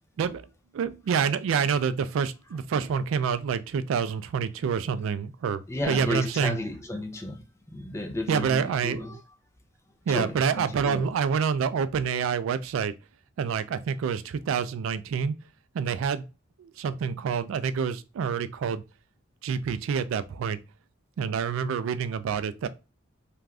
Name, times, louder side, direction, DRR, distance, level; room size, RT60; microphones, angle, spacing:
voice 1, 0.7-6.6 8.3-9.1 10.1-12.9 13.4-15.3 15.7-16.3 16.6-18.8 19.4-20.6 21.2-22.7, right 6 dB, 80° right, 0.3 m, -27 dB
voice 2, 5.7-9.2 10.1-11.1, left 1 dB, 15° left, 0.4 m, -33 dB
2.4 x 2.2 x 3.3 m
head